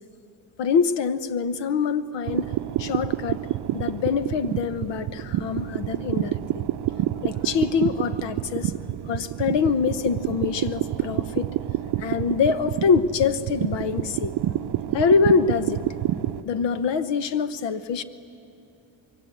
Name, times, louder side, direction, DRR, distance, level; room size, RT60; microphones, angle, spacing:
voice 1, 0.6-2.5 2.8-3.4 3.7-6.6 7.2-8.7 9.1-11.5 12.0-14.3 14.9-15.9 16.4-18.0, left 6 dB, 65° left, 13 dB, 1.0 m, -24 dB
sound 1, 2.3-16.4, right 13 dB, 60° right, 0.7 m, -28 dB
25.5 x 23.0 x 8.5 m, 2.7 s
cardioid pair, 175°, 45 cm